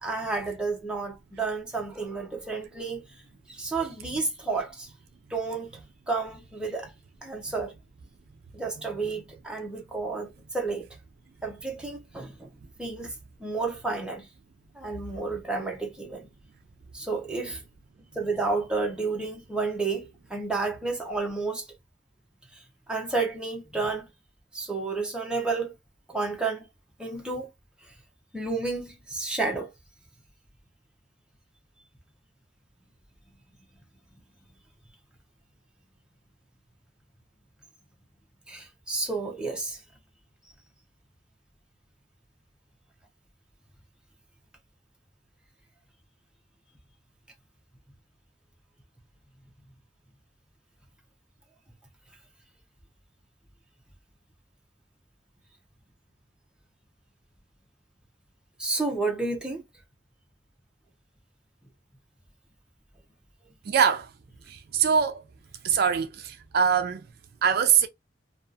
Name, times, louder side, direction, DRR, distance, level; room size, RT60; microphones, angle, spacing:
voice 1, 0.0-3.0 3.5-4.9 5.3-5.7 6.1-6.9 7.2-7.7 8.5-10.9 11.4-12.5 12.8-13.1 13.4-14.3 14.7-16.3 16.9-17.6 18.1-21.7 22.5-24.1 24.5-25.7 26.1-26.7 27.0-27.5 27.8-27.9 28.3-29.7 38.5-39.8 58.6-59.6, right 3 dB, 5° right, 0.6 m, -31 dB
voice 2, 63.7-64.1 64.5-65.2 65.6-67.0 67.4-67.9, right 7 dB, 50° right, 0.3 m, -23 dB
2.7 x 2.3 x 2.3 m
head